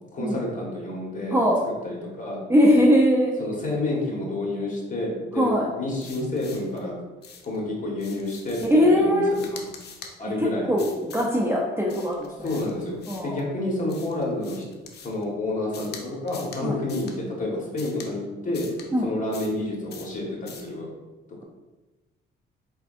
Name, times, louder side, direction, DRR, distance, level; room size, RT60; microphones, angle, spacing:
voice 1, 0.1-1.4 1.8-2.4 3.4-6.9 7.4-9.2 9.5-9.7 10.2-10.7 12.4-14.7 15.0-18.7 19.0-20.9, left 2 dB, 40° left, -2 dB, 1.4 m, -29 dB
voice 2, 2.5-3.3 5.3-5.7 8.7-9.3 10.4-12.5 13.1-13.4 16.6-16.8 18.9-19.1, equal, 10° right, -2 dB, 0.5 m, -21 dB
sound 1, 6.0-6.8 7.2-7.6 8.0-8.8 9.3-10.1 10.8-11.3 11.9-13.4 13.9-15.2 15.7-16.0 16.3-16.6 16.9-17.2 17.8-18.1 18.5-18.9 19.3-19.6 19.9-20.1 20.5-20.7, left 6 dB, 55° left, 0.7 m, -44 dB
4.5 x 3.5 x 2.5 m, 1.2 s
cardioid pair, 90°, 20 cm